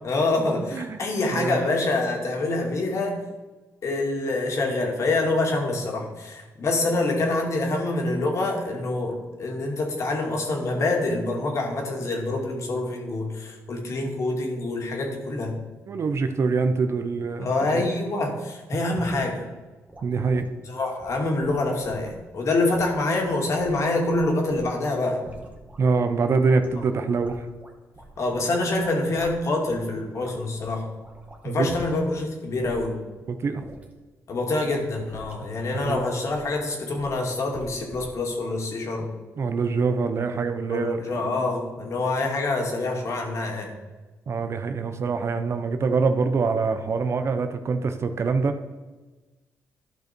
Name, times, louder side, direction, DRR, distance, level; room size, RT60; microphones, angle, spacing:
voice 1, 0.0-3.2 3.8-15.5 17.4-19.5 20.6-25.2 28.2-30.8 31.4-33.0 34.3-39.1 40.7-43.7, left 2 dB, 55° left, 1 dB, 2.3 m, -26 dB
voice 2, 15.9-17.8 20.0-20.5 25.8-27.4 31.4-31.7 33.3-33.6 35.8-36.0 39.4-41.3 44.3-48.6, right 4 dB, 50° right, 8 dB, 0.8 m, -24 dB
sound 1, 19.0-19.2 19.9-20.5 21.0-22.2 22.7-24.8 25.2-25.8 26.2-26.8 27.2-28.4 28.7-29.9 30.2-32.2 32.6-32.9 33.6-33.9 34.6-34.8 35.1-35.5 35.8-36.6 36.9-37.2 37.5-38.1, right 1 dB, 20° right, 1.9 m, -44 dB
12.5 x 5.5 x 4.5 m, 1.2 s
cardioid pair, 90°, 6 cm